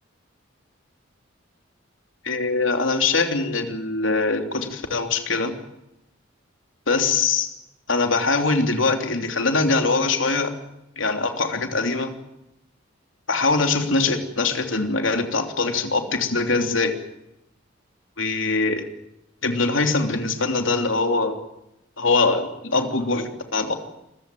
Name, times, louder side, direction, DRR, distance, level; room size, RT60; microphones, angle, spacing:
voice 1, 2.2-5.6 6.9-7.5 7.9-10.5 11.0-12.1 13.3-17.0 18.2-18.8 19.4-21.4 22.0-23.7, left 3 dB, 75° left, 6 dB, 3.2 m, -22 dB
27.0 x 15.5 x 9.2 m, 0.89 s
head